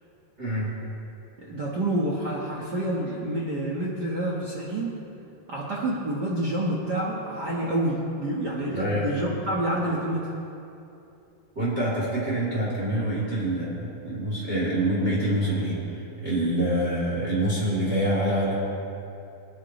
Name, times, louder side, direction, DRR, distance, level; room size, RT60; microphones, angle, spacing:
voice 1, 0.4-0.7 8.7-9.1 11.5-15.8 16.2-18.5, right 1 dB, 20° right, -8 dB, 3.1 m, -26 dB
voice 2, 1.4-4.9 5.5-10.3, right 1 dB, 55° right, -4 dB, 1.1 m, -28 dB
26.0 x 9.5 x 3.2 m, 2.7 s
omnidirectional pair, 4.0 m